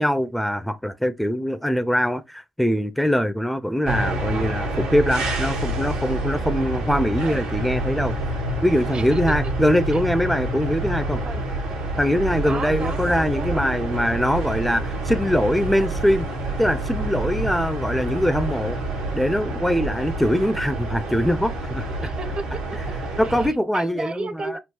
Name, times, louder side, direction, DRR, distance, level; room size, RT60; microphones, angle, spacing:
voice 1, 0.0-8.1 8.6-11.2 12.0-16.3 16.6-18.8 19.1-21.9 23.2-24.6, equal, 5° left, 0.4 m, -22 dB
sound 1, 3.8-23.5, right 1 dB, 85° right, 0.8 m, -27 dB
voice 2, 12.4-13.7 22.0-24.6, right 3 dB, 45° right, 0.6 m, -34 dB
3.7 x 2.3 x 2.9 m
hypercardioid pair, 40°, 2 cm